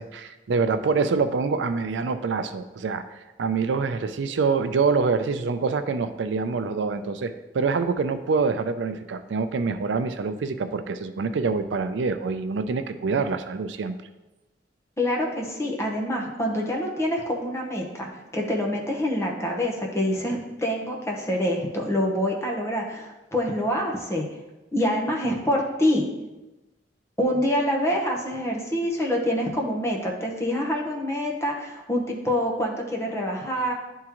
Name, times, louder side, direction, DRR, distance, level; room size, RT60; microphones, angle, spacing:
voice 1, 0.0-3.0 3.4-13.9, right 4 dB, 90° right, 10 dB, 0.4 m, -25 dB
voice 2, 15.0-24.3 24.7-26.1 27.2-33.7, equal, 15° left, 0 dB, 0.9 m, -26 dB
10.5 x 3.7 x 3.0 m, 1.1 s
head